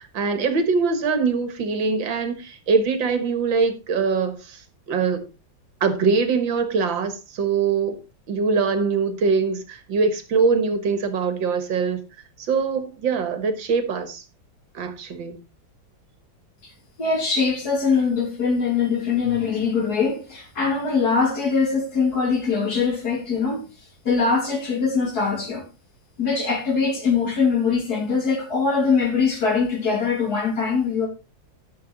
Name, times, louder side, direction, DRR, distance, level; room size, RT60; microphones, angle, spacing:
voice 1, 0.0-5.2 5.8-8.0 8.3-12.0 12.4-14.2 14.7-15.4, right 5 dB, 75° right, 2.2 m, -23 dB
voice 2, 17.0-23.6 24.0-25.7 26.2-31.1, left 5 dB, 50° left, 3.1 m, -22 dB
12.5 x 6.6 x 4.0 m
omnidirectional pair, 2.1 m